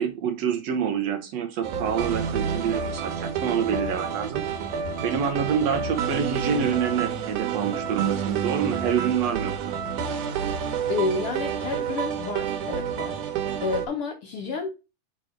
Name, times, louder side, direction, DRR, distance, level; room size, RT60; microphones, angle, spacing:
voice 1, 0.0-4.4 5.0-9.8, right 7 dB, 70° right, 1.7 m, -27 dB
sound 1, 1.6-13.9, right 7 dB, 90° right, 2.5 m, -29 dB
voice 2, 10.9-14.7, left 4 dB, 65° left, 1.4 m, -30 dB
5.2 x 4.5 x 4.9 m
omnidirectional pair, 3.5 m